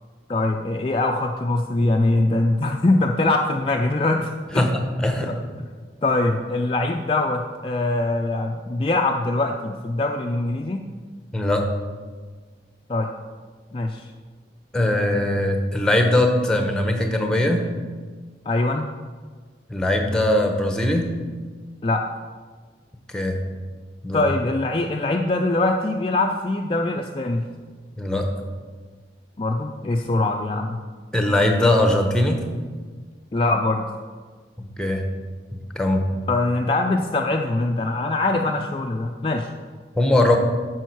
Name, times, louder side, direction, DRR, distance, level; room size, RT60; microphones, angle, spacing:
voice 1, 0.3-4.7 5.3-5.4 6.0-10.8 12.9-13.1 13.7-14.1 18.5-18.8 21.8-22.0 24.1-27.5 29.4-30.8 33.3-33.8 36.3-39.5, left 2 dB, 30° left, 2 dB, 0.4 m, -23 dB
voice 2, 4.6-5.3 11.3-11.6 14.7-17.6 19.7-21.1 23.1-23.4 24.0-24.2 28.0-28.3 31.1-32.4 34.6-35.0 35.7-36.0 40.0-40.4, left 1 dB, 5° left, 4 dB, 0.8 m, -20 dB
9.1 x 6.3 x 4.6 m, 1.5 s
head